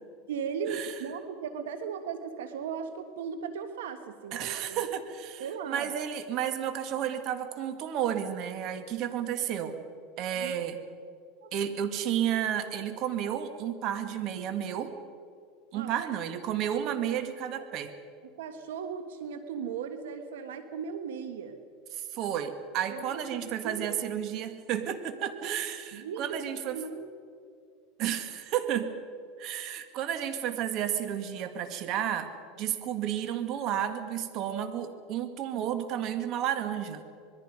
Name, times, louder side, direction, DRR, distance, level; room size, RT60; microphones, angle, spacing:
voice 1, 0.3-4.8 5.4-5.9 9.6-9.8 10.4-10.5 11.4-11.5 15.7-16.1 18.3-21.6 22.9-23.9 25.9-26.4 26.7-27.1, right 6 dB, 90° right, 8 dB, 1.4 m, -37 dB
voice 2, 4.3-9.8 10.2-10.8 11.5-15.0 15.7-17.9 21.9-26.8 28.0-28.9 29.4-32.3 32.6-37.0, right 10 dB, 50° right, 8 dB, 2.2 m, -32 dB
26.0 x 21.5 x 5.3 m, 2.3 s
supercardioid pair, 120°, 0 cm